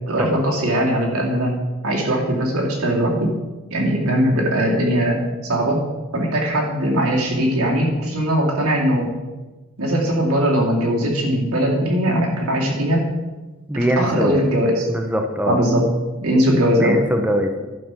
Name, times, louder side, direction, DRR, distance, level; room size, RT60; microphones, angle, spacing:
voice 1, 0.1-1.5 1.8-3.3 3.7-5.8 6.1-9.1 9.8-13.1 13.7-14.9 15.5-15.9 16.2-17.0, equal, 85° right, -2 dB, 2.4 m, -20 dB
voice 2, 13.7-14.4 14.9-15.6 16.8-17.7, equal, 5° right, 4 dB, 0.6 m, -22 dB
11.0 x 5.4 x 5.7 m, 1.2 s
head